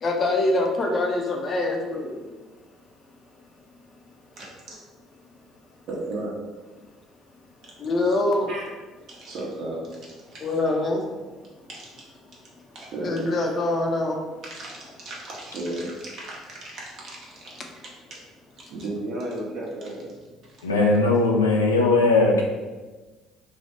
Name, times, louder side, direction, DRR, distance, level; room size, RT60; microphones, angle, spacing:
voice 1, 0.0-2.2 7.8-8.5 10.4-11.0 13.0-14.2, left 2 dB, 45° left, 2 dB, 0.7 m, -24 dB
voice 2, 4.4-4.7 5.9-6.4 7.6-7.8 8.5-8.6 9.1-10.5 11.7-12.1 12.7-13.5 14.4-17.6 18.1-18.2 18.6-20.1 20.4-20.6, right 1 dB, 55° right, -4 dB, 1.1 m, -35 dB
voice 3, 20.6-22.4, left 3 dB, 85° left, -1 dB, 0.5 m, -19 dB
3.3 x 2.3 x 4.3 m, 1.3 s
figure-of-eight pair, 55°, 0 cm